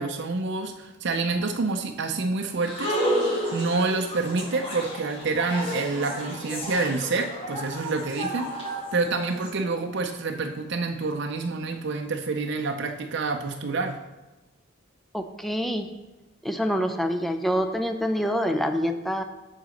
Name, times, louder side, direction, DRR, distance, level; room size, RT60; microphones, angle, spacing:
voice 1, 0.0-14.0, right 3 dB, 60° right, 4 dB, 0.5 m, -28 dB
sound 1, 2.6-9.5, equal, 30° left, 1.6 m, -31 dB
voice 2, 15.1-15.9 16.4-19.2, equal, ahead, 6 dB, 0.5 m, -26 dB
7.8 x 3.9 x 6.4 m, 1.1 s
head